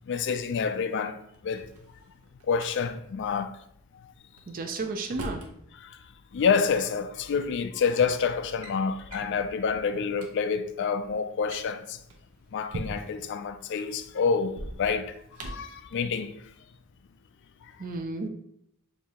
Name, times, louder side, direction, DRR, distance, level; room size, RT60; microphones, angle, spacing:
voice 1, 0.1-1.7 2.4-3.6 4.0-4.1 5.7-6.0 6.3-12.0 12.5-16.3 17.6-17.7, left 5 dB, 55° left, 0.3 m, -28 dB
Drawer open or close, 1.3-2.7 4.4-5.5 6.8-6.9 7.7-8.0 8.3-8.8 9.1-9.4 9.8-9.9 10.1-10.3 11.3-13.3 14.4-15.8, right 2 dB, 75° right, 0.8 m, -41 dB
voice 2, 4.5-5.4 17.8-18.3, right 3 dB, 40° right, 0.4 m, -33 dB
6.5 x 2.7 x 2.9 m
head